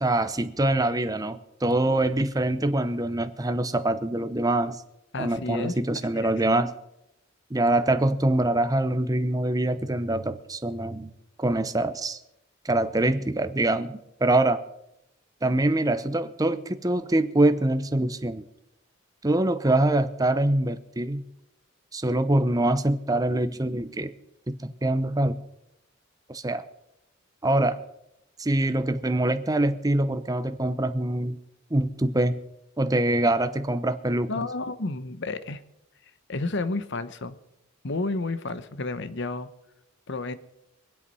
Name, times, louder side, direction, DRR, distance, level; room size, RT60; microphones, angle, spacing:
voice 1, 0.0-4.8 5.2-6.7 7.5-11.1 11.4-12.2 12.6-14.6 15.4-18.4 19.2-21.2 21.9-24.1 24.5-25.4 26.3-26.6 27.4-27.8 28.4-31.4 31.7-32.4 32.8-34.3, right 1 dB, 15° right, 11 dB, 0.8 m, -24 dB
voice 2, 5.1-5.8 6.2-6.3 34.3-35.6 36.3-37.3 37.8-39.5 40.1-40.3, left 3 dB, 60° left, 12 dB, 0.9 m, -31 dB
24.0 x 8.4 x 5.5 m, 0.84 s
head